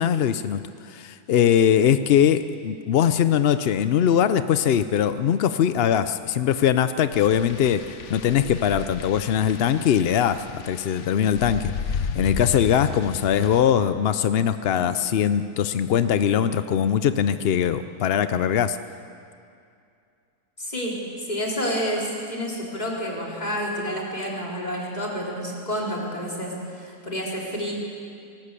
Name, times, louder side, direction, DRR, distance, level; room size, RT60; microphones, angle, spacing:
voice 1, 0.0-11.7 12.1-18.8, left 9 dB, 70° left, 11 dB, 0.5 m, -21 dB
sound 1, 7.1-13.6, left 6 dB, 55° left, 1.1 m, -33 dB
voice 2, 20.6-27.7, equal, 25° left, -3 dB, 4.1 m, -29 dB
19.0 x 18.5 x 8.3 m, 2.4 s
omnidirectional pair, 1.7 m